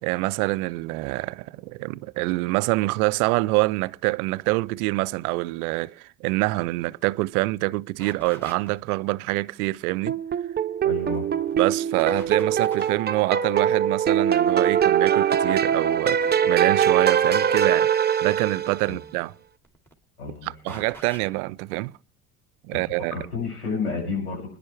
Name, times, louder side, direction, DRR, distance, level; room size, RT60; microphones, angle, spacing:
voice 1, 0.0-10.2 11.6-19.4 20.4-21.9 22.6-23.1, right 21 dB, 75° right, 0.6 m, -26 dB
sound 1, 7.4-7.5 8.0-8.8 11.0-11.5 12.0-13.1 15.2-15.6 16.2-17.8 19.5-19.9 20.7-21.3, right 1 dB, 5° left, 2.8 m, -44 dB
sound 2, 10.1-19.0, right 8 dB, 20° right, 0.8 m, -22 dB
voice 2, 10.8-11.2 20.2-20.8 22.7-22.8 23.1-24.6, left 4 dB, 90° left, 7.1 m, -30 dB
25.0 x 10.5 x 3.3 m
hypercardioid pair, 70°, 45 cm